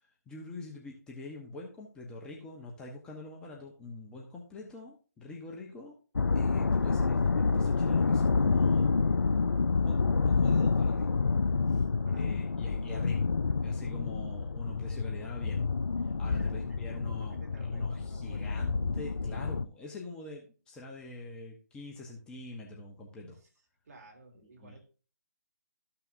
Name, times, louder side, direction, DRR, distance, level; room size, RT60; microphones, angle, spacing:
voice 1, 0.0-5.9 6.3-8.9 9.9-11.1 12.1-13.3 13.6-15.6 16.0-17.4 17.6-23.4 24.6-24.8, left 2 dB, 10° left, -2 dB, 1.0 m, -45 dB
sound 1, 6.2-19.7, left 4 dB, 80° left, 0.4 m, -28 dB
voice 2, 11.7-12.4 13.2-13.8 16.3-18.6 23.3-23.5 23.8-24.8, right 2 dB, 55° right, 1 dB, 3.0 m, -54 dB
13.5 x 5.7 x 2.6 m, 0.37 s
figure-of-eight pair, 145°, 10 cm